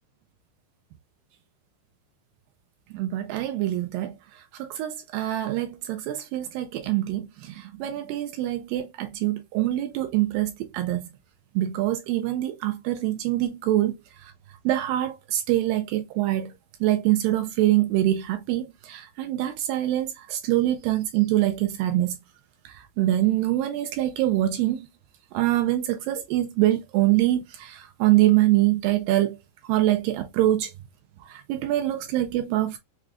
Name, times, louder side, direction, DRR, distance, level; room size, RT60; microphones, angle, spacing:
voice 1, 2.9-4.1 4.6-11.0 11.6-14.0 14.7-16.5 16.8-22.2 23.0-24.9 25.3-29.4 29.7-30.7 31.3-32.8, right 14 dB, 80° right, 2.1 m, -24 dB
6.0 x 2.3 x 2.3 m
omnidirectional pair, 4.3 m